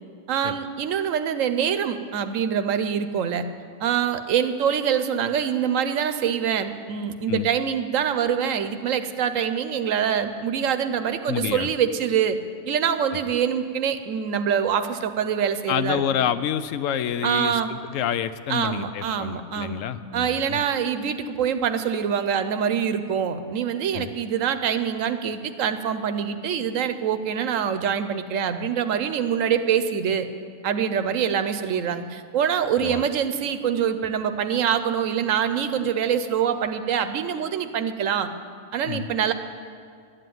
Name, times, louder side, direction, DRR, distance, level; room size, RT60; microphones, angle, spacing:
voice 1, 0.3-3.5 3.8-12.4 12.7-16.3 17.2-17.7 18.5-19.8 20.1-30.3 30.6-38.3 38.7-39.3, right 8 dB, 90° right, 10 dB, 1.1 m, -25 dB
voice 2, 11.3-11.7 15.7-20.6 23.9-24.1 32.8-33.0 38.8-39.1, left 9 dB, 80° left, 13 dB, 1.0 m, -28 dB
11.5 x 7.7 x 9.3 m, 2.2 s
omnidirectional pair, 1.3 m